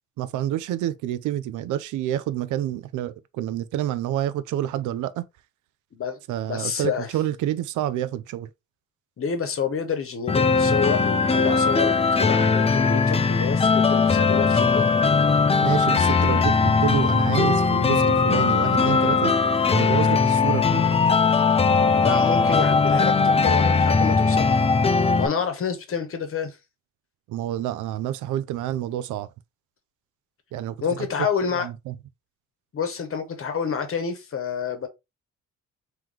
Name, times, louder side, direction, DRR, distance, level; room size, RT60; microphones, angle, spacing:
voice 1, 0.2-5.2 6.3-8.5 15.6-19.3 19.7-20.9 27.3-29.3 30.5-30.8 31.2-31.3 31.5-31.9, right 12 dB, 80° right, 0.5 m, -28 dB
voice 2, 6.5-7.1 9.2-14.9 21.8-24.5 25.2-26.6 30.8-31.7 32.7-34.9, left 6 dB, 45° left, 1.1 m, -28 dB
sound 1, 10.3-25.3, left 4 dB, 20° left, 0.5 m, -19 dB
3.7 x 3.1 x 3.1 m
cardioid pair, 90°, 30 cm